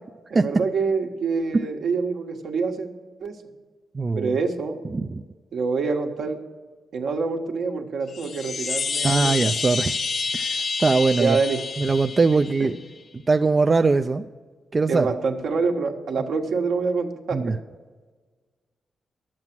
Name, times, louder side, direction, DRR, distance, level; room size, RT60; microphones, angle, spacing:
voice 1, 0.3-2.9 3.2-3.4 4.1-4.8 5.5-6.4 6.9-9.3 11.2-11.6 12.6-12.7 14.9-17.5, right 4 dB, 75° right, 3 dB, 1.2 m, -26 dB
voice 2, 3.9-4.4 4.9-5.2 9.0-10.0 10.3-11.4 11.8-12.7 13.1-14.2 14.7-15.1 17.3-17.6, right 3 dB, 35° right, 7 dB, 0.4 m, -21 dB
Chime, 8.1-12.8, left 4 dB, 50° left, 0.5 m, -28 dB
11.0 x 7.5 x 5.9 m, 1.4 s
cardioid pair, 70°, 0 cm